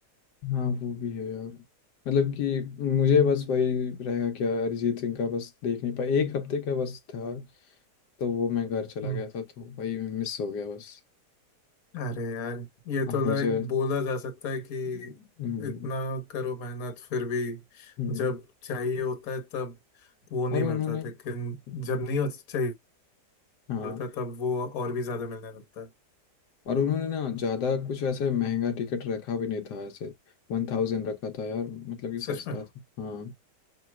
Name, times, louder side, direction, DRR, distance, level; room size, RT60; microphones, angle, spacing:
voice 1, 0.4-1.6 2.1-7.4 8.2-11.0 13.1-13.7 15.4-15.9 18.0-18.3 20.5-21.1 21.7-21.8 23.7-24.0 26.7-30.1 30.5-32.6 33.0-33.3, left 6 dB, 80° left, 1.3 m, -29 dB
voice 2, 11.9-15.2 15.6-22.8 23.8-25.9 32.2-32.6, left 3 dB, 60° left, 1.4 m, -32 dB
5.8 x 3.0 x 2.2 m
omnidirectional pair, 1.8 m